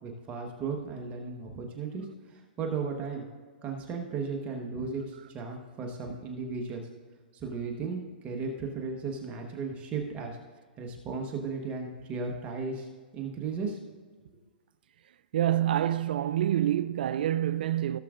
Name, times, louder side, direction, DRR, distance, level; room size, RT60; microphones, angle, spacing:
voice 1, 0.0-2.1 2.6-3.2 3.6-6.9 7.3-10.4 10.8-12.9 13.1-13.8, right 4 dB, 25° right, 1.3 m, -35 dB
voice 2, 15.3-18.0, right 12 dB, 65° right, 0.3 m, -27 dB
16.5 x 7.5 x 2.5 m
hypercardioid pair, 135°, 6 cm